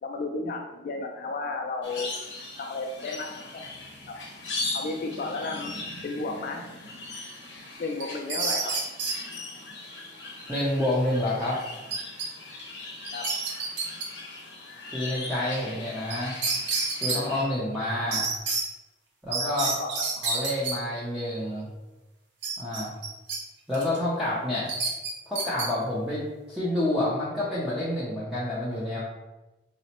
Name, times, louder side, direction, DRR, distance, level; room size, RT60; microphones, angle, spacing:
voice 1, 0.0-2.1 2.6-3.7 4.1-4.2 4.7-5.7 6.0-6.7 7.8-8.7 13.1-13.2 19.4-19.9, left 3 dB, 50° left, 2 dB, 0.3 m, -33 dB
sound 1, 1.8-17.4, left 2 dB, 80° left, 0.8 m, -39 dB
sound 2, 8.0-9.2 11.9-12.3 12.6-12.7 13.0-14.1 16.1-16.2 16.4-17.2 18.1-18.6 19.3-20.7 22.4-23.4 23.7-24.0 24.7-25.7, right 4 dB, 70° right, 0.7 m, -28 dB
voice 2, 10.5-11.6 14.9-16.3 17.0-18.3 19.2-19.8 20.2-21.7 22.6-22.9 23.7-24.7 25.3-26.2 26.5-29.0, left 1 dB, 5° right, -9 dB, 0.5 m, -28 dB
4.0 x 2.1 x 2.8 m, 1.1 s
head